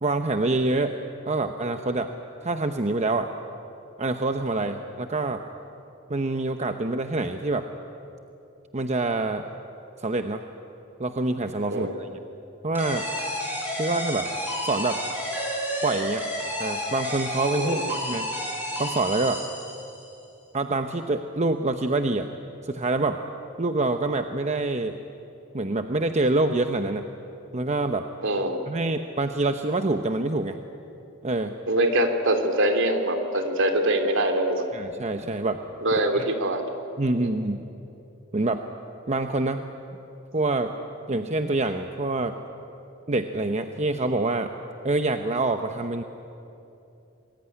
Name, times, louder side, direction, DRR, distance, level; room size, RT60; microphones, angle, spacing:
voice 1, 0.0-0.9 1.3-2.1 2.4-3.3 4.0-5.4 6.1-7.7 8.7-9.4 10.0-10.4 11.0-12.1 12.6-13.1 13.8-14.3 14.6-15.0 15.8-16.2 16.6-18.3 18.8-19.4 20.5-22.3 22.6-23.2 23.6-25.0 25.5-27.0 27.5-28.0 28.7-30.6 31.2-31.5 34.7-35.6 35.9-36.3 37.0-37.7 38.3-38.6 39.1-39.6 40.3-40.7 41.1-42.3 43.1-44.5 44.8-46.0, right 2 dB, 30° right, 6 dB, 0.9 m, -26 dB
sound 1, 12.7-20.1, equal, 10° right, 7.2 m, -31 dB
voice 2, 28.2-28.6 31.7-34.7 35.8-36.6 37.2-37.3, right 1 dB, 60° right, 5 dB, 2.8 m, -23 dB
27.0 x 21.0 x 9.8 m, 2.9 s
head